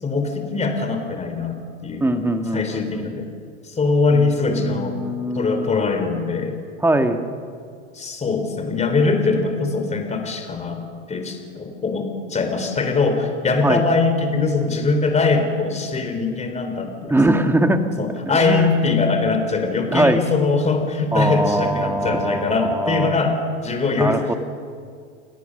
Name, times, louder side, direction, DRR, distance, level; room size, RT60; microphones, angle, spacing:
voice 1, 0.0-2.1 2.5-3.3 3.6-5.0 5.3-6.6 7.9-17.4 18.0-23.3 23.6-24.4, left 4 dB, 15° left, 6 dB, 3.8 m, -22 dB
voice 2, 2.0-3.1 4.1-5.7 6.8-7.3 13.6-13.8 17.1-17.9 18.3-18.7 19.9-20.2 21.1-23.2 24.0-24.3, right 1 dB, 5° right, 7 dB, 1.6 m, -21 dB
29.0 x 18.0 x 6.6 m, 2.2 s
hypercardioid pair, 115°, 39 cm